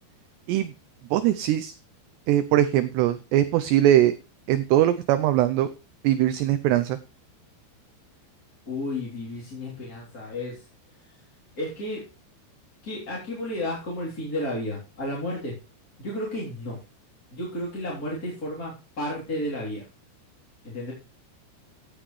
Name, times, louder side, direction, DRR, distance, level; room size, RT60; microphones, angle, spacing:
voice 1, 1.1-1.7 2.3-4.1 4.5-5.7 6.0-7.0, right 12 dB, 80° right, 12 dB, 2.5 m, -21 dB
voice 2, 8.7-10.6 11.6-12.0 12.8-15.5 16.0-16.8 17.3-19.8 20.6-20.9, left 1 dB, 20° left, -5 dB, 3.1 m, -32 dB
16.0 x 8.1 x 3.2 m, 0.31 s
omnidirectional pair, 5.6 m